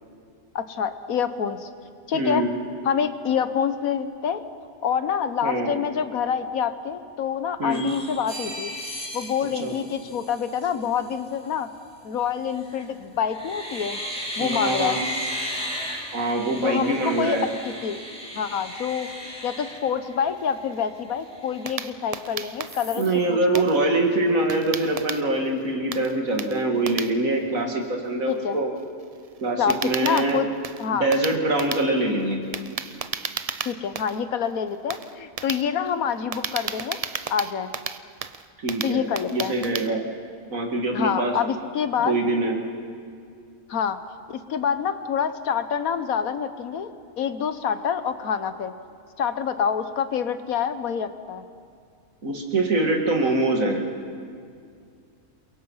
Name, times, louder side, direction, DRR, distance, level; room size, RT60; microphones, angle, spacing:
voice 1, 0.5-1.7 2.1-2.5 2.8-4.4 4.8-8.7 9.1-11.7 12.0-14.0 14.4-15.0 16.6-17.4 17.6-18.0 18.3-19.1 19.4-23.6 28.3-28.6 29.6-30.5 30.8-31.1 33.6-37.0 37.3-37.7 38.8-39.5 40.9-42.2 43.7-44.0 44.3-46.9 47.2-48.7 49.2-51.4, left 7 dB, 85° left, 11 dB, 1.5 m, -26 dB
voice 2, 2.1-2.5 5.4-5.7 7.6-7.8 9.6-9.7 14.4-15.0 16.1-17.5 22.9-28.7 29.4-30.4 30.9-32.4 38.6-39.1 39.3-40.0 40.5-41.3 42.0-42.6 52.2-53.8, right 2 dB, 75° right, 2 dB, 2.7 m, -24 dB
sound 1, 7.7-10.7 12.5-12.9 13.3-20.5 21.0-21.1 21.3-22.2 22.7-23.1, equal, 5° left, 2.7 m, -35 dB
sound 2, 20.4-25.6 25.9-39.9, right 6 dB, 45° right, 0.4 m, -34 dB
29.0 x 22.5 x 5.6 m, 2.3 s
omnidirectional pair, 1.5 m